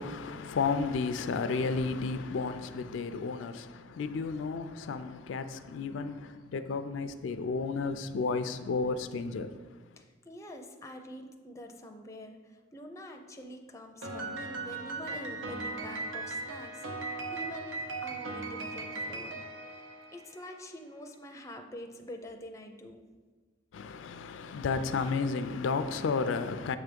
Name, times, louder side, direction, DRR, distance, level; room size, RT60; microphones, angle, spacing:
voice 1, 0.0-9.5 23.7-26.8, left 4 dB, 85° left, 0.4 m, -32 dB
voice 2, 10.0-19.5 20.1-23.0, left 1 dB, 15° left, 0.5 m, -46 dB
Piano, 14.0-20.5, right 3 dB, 85° right, 0.8 m, -38 dB
7.3 x 3.4 x 5.2 m
head